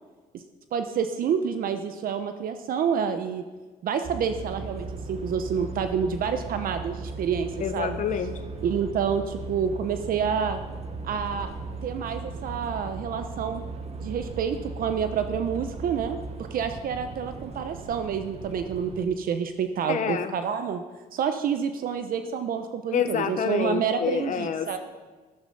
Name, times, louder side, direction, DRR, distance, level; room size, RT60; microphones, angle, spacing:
voice 1, 0.7-3.4 3.8-8.0 8.6-10.6 11.0-11.5 11.8-13.6 14.0-16.2 16.5-20.8 21.1-24.8, right 7 dB, 60° right, 8 dB, 1.0 m, -28 dB
sound 1, 4.0-19.1, right 3 dB, 40° right, 1.4 m, -37 dB
voice 2, 7.6-8.3 19.9-20.3 22.9-24.8, left 7 dB, 50° left, 8 dB, 1.2 m, -27 dB
13.5 x 13.0 x 5.5 m, 1.3 s
cardioid pair, 110°, 17 cm